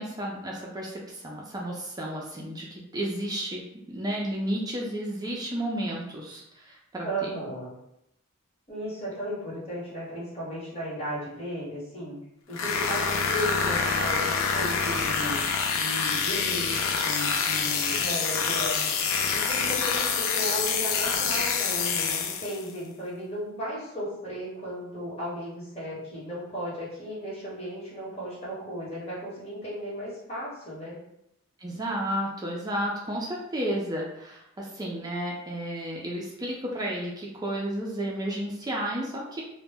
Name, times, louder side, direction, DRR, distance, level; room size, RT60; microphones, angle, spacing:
voice 1, 0.0-7.3 31.6-39.4, right 1 dB, 20° right, -3 dB, 0.4 m, -32 dB
voice 2, 7.0-7.7 8.7-12.2 12.5-15.4 15.7-18.9 19.3-31.0, equal, 30° left, -8 dB, 1.0 m, -35 dB
sound 1, 12.5-22.7, left 5 dB, 70° left, 0.3 m, -26 dB
2.1 x 2.0 x 3.3 m, 0.80 s
head